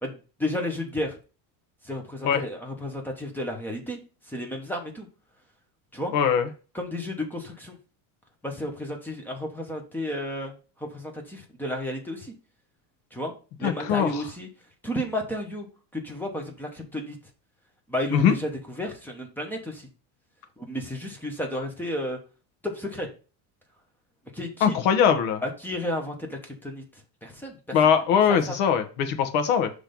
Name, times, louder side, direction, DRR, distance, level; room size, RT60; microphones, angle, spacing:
voice 1, 0.0-1.1 1.8-4.0 4.3-5.1 5.9-6.1 6.7-7.8 8.4-12.3 13.1-13.3 13.6-14.5 14.8-15.7 15.9-17.2 17.9-18.5 18.8-19.9 20.6-22.2 22.6-23.1 24.3-24.8 25.4-26.8 27.2-27.8 28.3-28.6, left 1 dB, 5° left, 2 dB, 0.9 m, -32 dB
voice 2, 6.1-6.5 13.6-14.3 18.1-18.3 24.6-25.4 27.7-29.7, left 7 dB, 75° left, 8 dB, 1.2 m, -21 dB
6.0 x 3.4 x 5.2 m, 0.35 s
cardioid pair, 165°, 48 cm